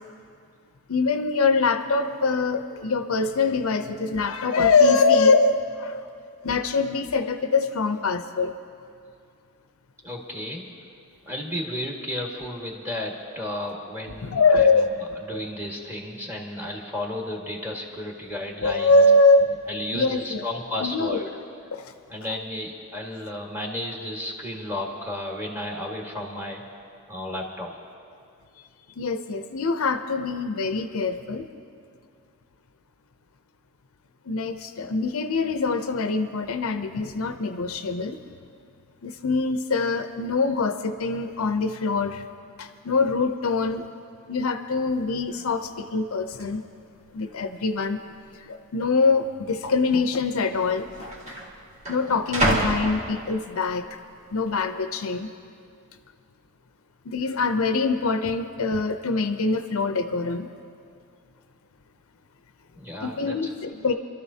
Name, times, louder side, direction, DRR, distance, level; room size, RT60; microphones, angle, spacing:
voice 1, 0.9-6.0 6.4-8.5 14.2-14.9 18.6-19.5 19.9-20.4 20.8-21.2 21.7-21.8 29.0-31.5 34.3-38.2 39.0-42.2 42.6-43.8 44.3-46.6 47.1-48.0 48.5-51.1 51.9-53.8 54.3-55.3 57.1-60.5 63.0-63.9, left 3 dB, 70° left, 8 dB, 0.6 m, -23 dB
voice 2, 10.0-10.7 11.2-19.1 19.7-21.3 22.1-26.6 27.1-27.8 62.8-63.7, left 1 dB, 10° right, -1 dB, 1.5 m, -33 dB
sound 1, 44.9-45.0 45.3-45.7 46.4-46.5 47.2-47.8 48.0-48.2 49.0-49.2 50.2-50.3 50.5-53.7 54.2-54.6, right 1 dB, 30° right, 1.8 m, -29 dB
27.0 x 12.5 x 2.8 m, 2.3 s
head